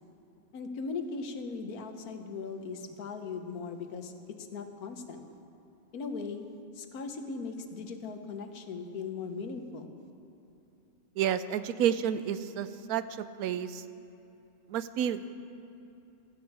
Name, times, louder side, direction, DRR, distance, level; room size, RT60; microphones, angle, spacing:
voice 1, 0.5-5.2 5.9-6.5 6.7-10.0, left 4 dB, 85° left, 7 dB, 1.5 m, -39 dB
voice 2, 11.2-13.0 13.4-13.8 14.7-15.3, right 9 dB, 80° right, 13 dB, 1.1 m, -30 dB
15.5 x 14.0 x 4.8 m, 2.8 s
omnidirectional pair, 1.5 m